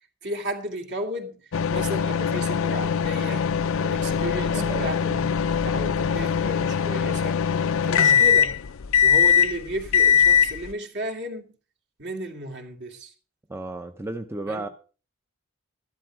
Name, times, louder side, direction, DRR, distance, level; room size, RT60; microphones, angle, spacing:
voice 1, 0.2-3.5 3.8-7.4 7.8-8.6 9.0-11.5 12.0-13.1 14.5-14.7, equal, 55° right, 2.5 m, -34 dB
sound 1, 1.5-10.7, left 8 dB, 65° left, 0.5 m, -21 dB
voice 2, 4.5-4.9 13.5-14.7, right 2 dB, 10° right, 0.6 m, -33 dB
12.5 x 11.5 x 4.5 m
head